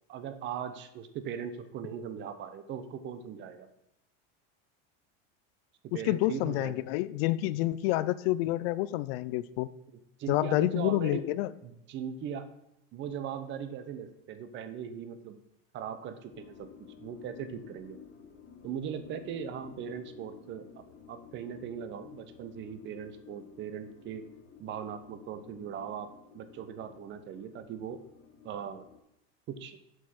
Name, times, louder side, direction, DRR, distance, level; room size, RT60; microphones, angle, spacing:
voice 1, 0.1-3.7 5.8-6.8 10.2-11.3 11.6-12.5 12.9-15.4 15.7-18.0 18.6-24.3 24.6-28.0 28.4-28.8 29.5-29.8, right 8 dB, 35° right, 11 dB, 0.8 m, -39 dB
voice 2, 6.0-9.7 10.3-11.5, left 16 dB, 70° left, 17 dB, 0.5 m, -28 dB
sound 1, 16.3-29.0, left 7 dB, 35° left, 1.8 m, -53 dB
7.6 x 5.3 x 6.0 m, 0.81 s
supercardioid pair, 140°, 31 cm